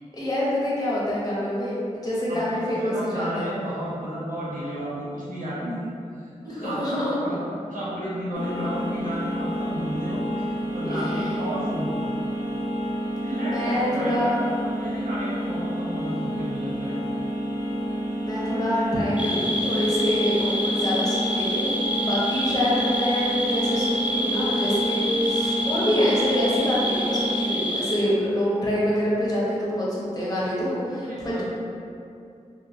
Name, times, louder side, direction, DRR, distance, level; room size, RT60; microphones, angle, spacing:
voice 1, 0.1-3.5 6.4-7.2 10.8-11.2 13.3-14.4 18.2-21.7 22.0-31.4, equal, 25° left, -7 dB, 0.9 m, -26 dB
voice 2, 2.3-5.9 6.2-6.8 7.2-7.4 7.7-12.0 13.2-14.3 14.8-17.0 31.0-31.4, equal, 80° right, -9 dB, 0.8 m, -32 dB
sound 1, 8.3-27.4, equal, 80° left, 0.6 m, -29 dB
sound 2, 19.2-28.0, equal, 10° right, 0.4 m, -28 dB
3.0 x 2.0 x 2.6 m, 2.5 s
cardioid pair, 45°, 14 cm